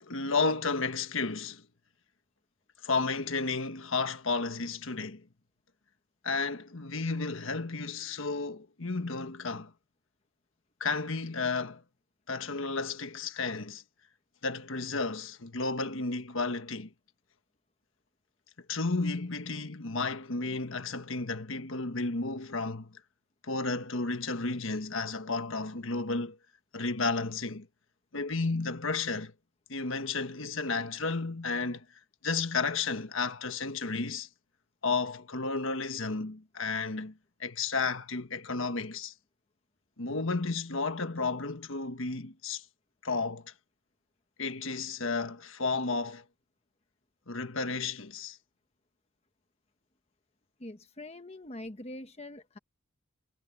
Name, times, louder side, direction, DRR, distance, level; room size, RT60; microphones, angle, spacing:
voice 1, 0.0-1.7 2.8-5.3 6.2-9.7 10.8-11.8 12.3-13.8 14.4-16.9 18.7-23.0 23.4-26.4 26.7-27.7 28.1-29.3 29.7-31.8 32.2-34.3 34.8-39.1 40.0-42.6 43.0-43.5 44.4-46.2 47.3-48.4, left 4 dB, 70° left, 1.4 m, -32 dB
voice 2, 50.6-52.6, left 1 dB, 30° left, 1.1 m, -43 dB
head